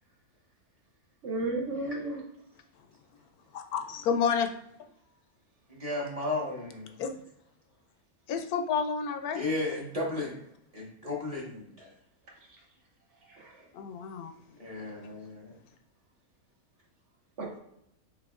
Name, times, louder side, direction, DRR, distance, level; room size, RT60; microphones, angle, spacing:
voice 1, 1.2-2.2 13.3-13.5 17.4-17.6, right 2 dB, 55° right, 0 dB, 1.1 m, -33 dB
voice 2, 1.9-2.2 5.7-6.9 9.3-10.4 10.7-11.9 14.6-15.6, left 2 dB, 25° right, -3 dB, 1.0 m, -34 dB
voice 3, 3.5-4.5 7.0-7.1 8.3-9.5 13.7-14.3, left 6 dB, 90° left, 7 dB, 1.1 m, -30 dB
5.0 x 3.5 x 2.4 m, 0.76 s
omnidirectional pair, 1.5 m